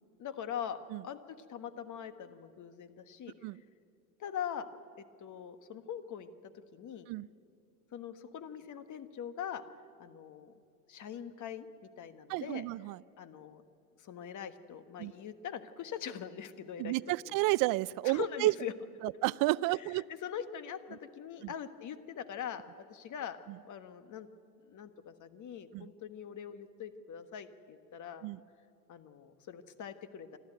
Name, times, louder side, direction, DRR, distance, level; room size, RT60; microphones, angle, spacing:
voice 1, 0.2-3.3 4.2-4.7 5.0-7.1 7.9-9.6 10.0-10.5 10.9-12.6 13.2-13.6 14.0-17.0 17.2-17.3 18.0-18.7 19.7-19.9 20.2-22.6 22.9-23.4 23.6-24.3 24.7-28.3 28.9-30.4, left 8 dB, 40° left, 10 dB, 1.4 m, -42 dB
voice 2, 12.3-13.0 15.0-15.1 16.8-18.5 19.0-20.0 21.4-21.5 25.7-25.9 28.2-28.4, right 20 dB, 50° right, 22 dB, 0.5 m, -31 dB
24.5 x 13.5 x 9.2 m, 2.5 s
hypercardioid pair, 90°, 46 cm